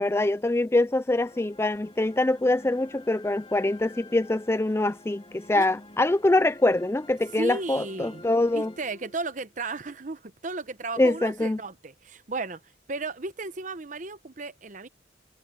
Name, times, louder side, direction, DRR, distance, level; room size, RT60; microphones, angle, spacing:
voice 1, 0.0-8.7 11.0-11.6, left 2 dB, 15° left, 0.3 m, -24 dB
sound 1, 1.2-9.5, left 2 dB, 30° left, 3.8 m, -50 dB
voice 2, 7.4-8.2 8.5-12.6 12.9-14.9, right 3 dB, 40° right, 0.9 m, -34 dB
head